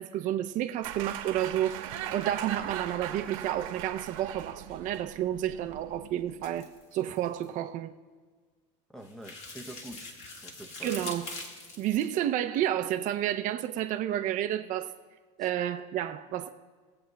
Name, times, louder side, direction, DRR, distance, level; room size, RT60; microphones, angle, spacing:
voice 1, 0.0-6.7 6.9-7.9 10.8-11.3 11.8-14.9 15.4-16.5, right 12 dB, 50° right, 0.6 m, -30 dB
sound 1, 0.8-6.7, right 10 dB, 85° right, 1.2 m, -40 dB
sound 2, 6.4-7.5 9.0-12.2, left 2 dB, 40° left, 1.9 m, -43 dB
voice 2, 8.9-11.0 15.4-15.5, right 1 dB, ahead, 0.7 m, -46 dB
22.0 x 7.8 x 2.3 m
supercardioid pair, 115°, 17 cm